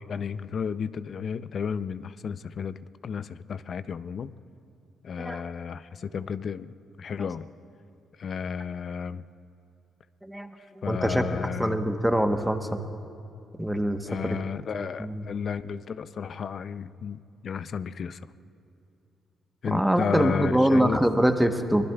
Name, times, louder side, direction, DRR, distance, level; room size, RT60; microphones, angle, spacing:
voice 1, 0.0-4.4 5.0-7.5 8.2-9.2 10.8-11.8 14.0-18.3 19.6-21.0, left 6 dB, 55° left, 14 dB, 0.5 m, -33 dB
voice 2, 10.2-12.8 13.6-14.4 15.0-15.2 19.7-21.8, right 1 dB, 5° right, 6 dB, 1.0 m, -24 dB
24.5 x 20.5 x 2.3 m, 2.7 s
cardioid pair, 90°, 0 cm